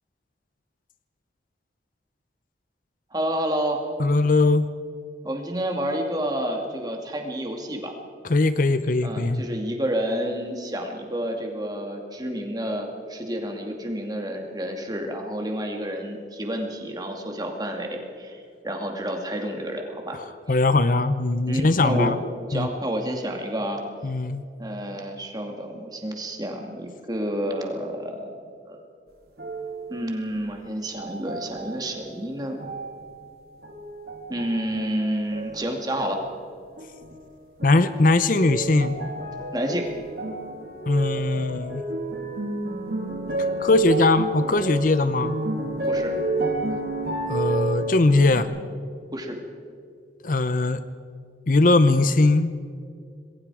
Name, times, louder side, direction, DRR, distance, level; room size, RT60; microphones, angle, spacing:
voice 1, 3.1-3.8 5.2-7.9 9.0-20.2 21.5-22.1 22.5-23.8 24.6-28.4 28.6-28.8 29.9-32.7 34.3-36.2 39.5-39.9 45.9-46.1 49.1-49.4, equal, 20° right, 2 dB, 2.4 m, -29 dB
voice 2, 4.0-4.7 8.3-9.4 20.5-22.2 22.5-22.7 24.0-24.4 37.6-39.0 40.9-41.8 43.6-45.4 47.3-48.5 50.2-50.8 51.5-52.5, left 2 dB, 50° left, 12 dB, 0.7 m, -20 dB
sound 1, 29.4-30.4 30.9-32.0 32.6-33.2 33.6-35.0 35.3-36.2 36.8-37.3 37.6-48.4, right 2 dB, 60° right, 2.9 m, -30 dB
27.0 x 21.0 x 4.9 m, 2.3 s
head